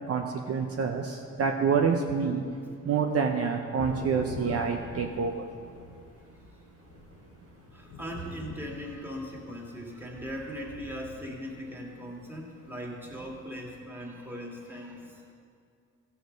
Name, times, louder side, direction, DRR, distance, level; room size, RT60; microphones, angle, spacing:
voice 1, 0.1-2.4 2.8-5.5, right 5 dB, 50° right, 2 dB, 0.8 m, -27 dB
Thunder / Rain, 3.8-13.8, left 2 dB, 85° left, 1.2 m, -45 dB
voice 2, 7.7-15.3, equal, 5° right, -2 dB, 2.0 m, -39 dB
14.5 x 5.9 x 5.2 m, 2.3 s
cardioid pair, 90°, 30 cm